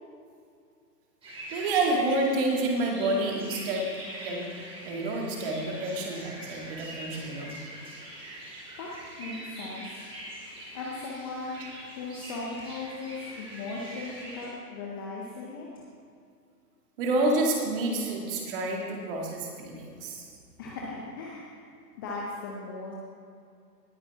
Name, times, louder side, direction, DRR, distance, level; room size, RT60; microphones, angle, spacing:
sound 1, 1.2-14.5, right 1 dB, 10° right, 3.1 m, -43 dB
voice 1, 1.5-3.9 4.2-4.5 4.8-7.6 17.0-20.2, right 2 dB, 35° right, 0 dB, 2.3 m, -28 dB
voice 2, 8.8-10.0 10.7-15.8 20.6-21.6 22.0-23.0, left 3 dB, 15° left, -3 dB, 0.6 m, -38 dB
19.0 x 8.9 x 3.5 m, 2.5 s
figure-of-eight pair, 130°, 50 cm